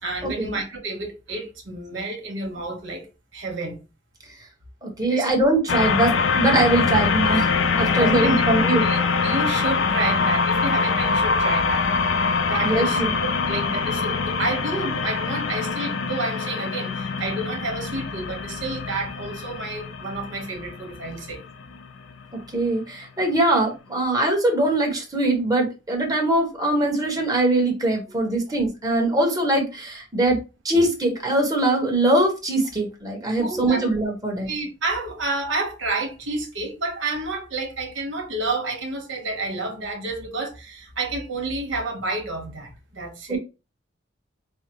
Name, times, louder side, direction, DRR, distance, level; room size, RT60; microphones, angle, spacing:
voice 1, 0.0-3.1 3.3-3.8 5.0-5.3 7.8-8.4 8.7-11.9 12.4-21.4 33.4-33.8 34.4-43.4, right 2 dB, 80° right, 1.3 m, -30 dB
voice 2, 4.8-7.5 7.8-8.8 12.6-13.1 22.5-30.4 30.6-34.5 43.3-43.4, right 2 dB, 20° right, 1.1 m, -22 dB
sound 1, 5.7-22.2, left 4 dB, 85° left, 0.5 m, -24 dB
5.5 x 2.1 x 3.0 m
head